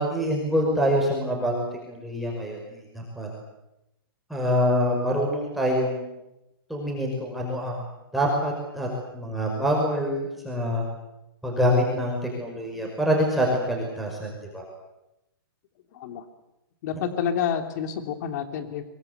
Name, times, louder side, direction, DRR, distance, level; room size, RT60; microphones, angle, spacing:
voice 1, 0.0-3.3 4.3-6.1 6.7-7.8 8.1-8.9 9.1-10.8 11.4-14.6, equal, ahead, -3 dB, 5.5 m, -25 dB
voice 2, 16.8-18.8, left 8 dB, 50° left, 7 dB, 3.1 m, -28 dB
24.0 x 23.5 x 8.2 m, 0.90 s
hypercardioid pair, 150°, 12 cm